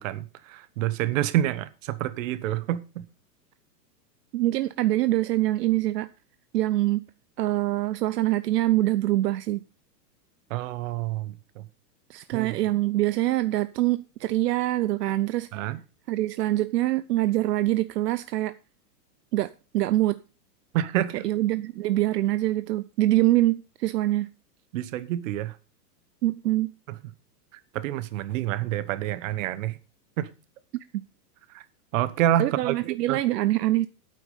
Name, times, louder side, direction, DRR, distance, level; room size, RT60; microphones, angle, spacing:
voice 1, 0.0-3.1 10.5-11.7 12.3-12.6 15.5-15.8 20.7-21.2 24.7-25.5 27.7-29.8 30.2-30.3 31.5-31.6 31.9-32.7 33.1-33.2, right 12 dB, 50° right, 1.2 m, -28 dB
voice 2, 4.3-6.1 6.5-7.0 7.4-9.6 12.1-15.7 16.1-18.5 19.3-20.2 21.2-24.3 26.2-26.7 32.4-33.9, right 15 dB, 75° right, 0.7 m, -24 dB
9.4 x 8.4 x 5.6 m
supercardioid pair, 150°, 49 cm